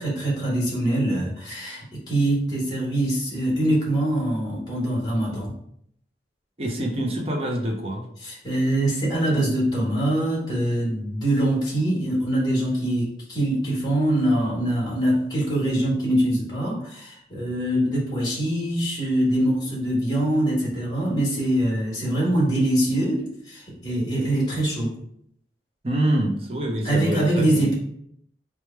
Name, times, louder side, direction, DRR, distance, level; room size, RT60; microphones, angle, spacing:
voice 1, 0.0-5.5 8.2-25.0 26.8-27.7, right 1 dB, 20° left, -5 dB, 1.4 m, -23 dB
voice 2, 6.6-8.1 25.8-27.7, right 1 dB, 35° right, 1 dB, 0.6 m, -26 dB
3.1 x 2.3 x 4.3 m, 0.71 s
head